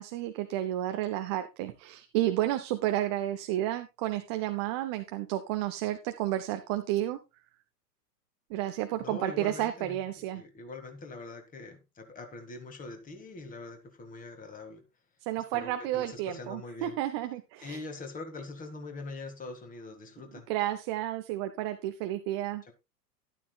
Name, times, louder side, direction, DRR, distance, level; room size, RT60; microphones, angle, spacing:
voice 1, 0.0-7.2 8.5-10.4 15.2-17.8 20.5-22.6, right 14 dB, 20° right, 0.4 m, -31 dB
voice 2, 9.0-10.0 10.4-14.8 15.5-16.9 17.6-20.5 22.7-22.8, left 3 dB, 15° left, 1.9 m, -43 dB
12.0 x 11.5 x 2.3 m
figure-of-eight pair, 100°, 49 cm